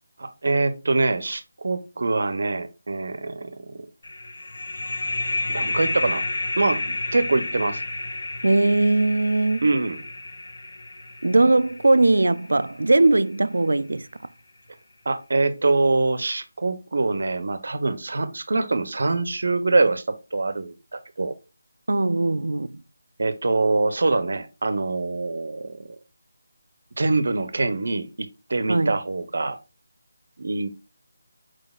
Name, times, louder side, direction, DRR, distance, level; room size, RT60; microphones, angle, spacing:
voice 1, 0.2-3.8 5.5-6.3 6.6-7.8 9.6-10.0 15.1-21.4 23.2-25.9 27.0-29.6 30.4-30.7, right 3 dB, 60° right, 0.7 m, -24 dB
sound 1, 4.0-13.3, left 2 dB, 65° left, 0.8 m, -31 dB
voice 2, 8.4-9.7 11.2-14.1 21.9-22.8 28.7-29.0, right 2 dB, 90° right, 0.3 m, -20 dB
4.7 x 4.1 x 2.3 m
figure-of-eight pair, 175°, 0 cm